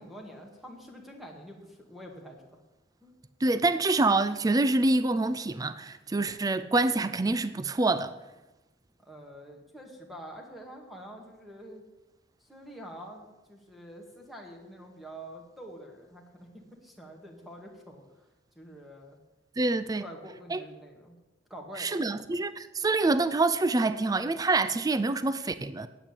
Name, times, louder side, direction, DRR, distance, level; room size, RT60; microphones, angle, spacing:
voice 1, 0.0-2.5 3.0-3.1 9.0-11.8 12.4-18.3 18.6-19.2 19.8-21.2 21.5-22.0, equal, ahead, 2.0 m, -46 dB
voice 2, 3.4-8.1 19.6-20.0 20.5-20.6 21.8-25.9, right 2 dB, 20° right, 0.4 m, -26 dB
8.9 x 8.9 x 8.3 m
head